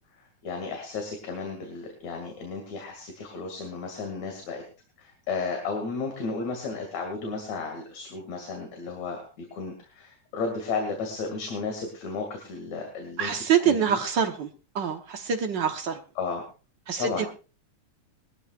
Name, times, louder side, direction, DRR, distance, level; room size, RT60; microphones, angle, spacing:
voice 1, 0.4-4.6 5.0-14.0 16.2-16.5 17.0-17.3, left 4 dB, 65° left, 3 dB, 3.5 m, -33 dB
voice 2, 13.2-14.5 14.7-16.0 16.9-17.3, right 7 dB, 55° right, 6 dB, 1.3 m, -25 dB
21.0 x 14.0 x 2.4 m, 0.33 s
omnidirectional pair, 3.4 m